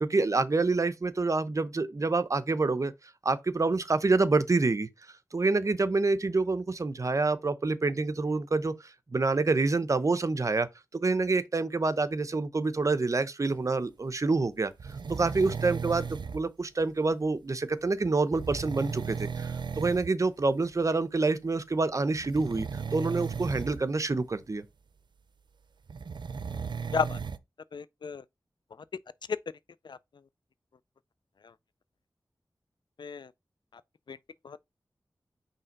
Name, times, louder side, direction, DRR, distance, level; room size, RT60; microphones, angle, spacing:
voice 1, 0.0-2.9 3.2-4.9 5.3-8.7 9.1-10.7 10.9-14.7 15.1-24.6, right 3 dB, 45° right, 0.7 m, -27 dB
sound 1, 14.8-16.4 18.3-20.1 20.4-20.7 22.1-23.8 25.9-27.4, right 5 dB, 80° right, 0.5 m, -35 dB
voice 2, 27.7-28.2 29.8-30.0 33.0-33.3 34.1-34.2 34.4-34.6, left 6 dB, 80° left, 0.4 m, -32 dB
5.6 x 3.3 x 5.2 m
wide cardioid pair, 95°, 8 cm